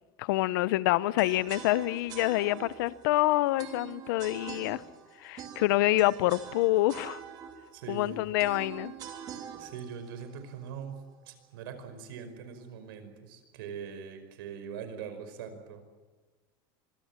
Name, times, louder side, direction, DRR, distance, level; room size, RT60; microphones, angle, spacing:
voice 1, 0.2-4.8 5.2-7.2 7.9-8.9, left 17 dB, 70° left, 0.8 m, -27 dB
sound 1, 1.2-11.2, right 8 dB, 35° right, 3.0 m, -45 dB
voice 2, 7.7-8.2 9.6-11.0 11.3-15.8, right 7 dB, 80° right, 5.2 m, -42 dB
25.5 x 23.0 x 7.5 m
supercardioid pair, 170°, 12 cm